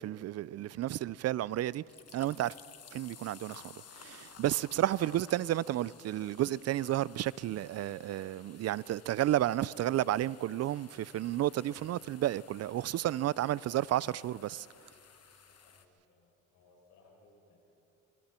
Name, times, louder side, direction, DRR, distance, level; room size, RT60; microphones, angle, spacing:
voice 1, 0.0-1.8 2.1-2.5 2.9-14.7, right 13 dB, 55° right, 0.4 m, -32 dB
sound 1, 1.6-15.8, left 8 dB, 55° left, 1.4 m, -56 dB
voice 2, 15.5-17.6, left 3 dB, 85° left, 7.2 m, -64 dB
26.5 x 23.5 x 4.4 m
cardioid pair, 90°, 30 cm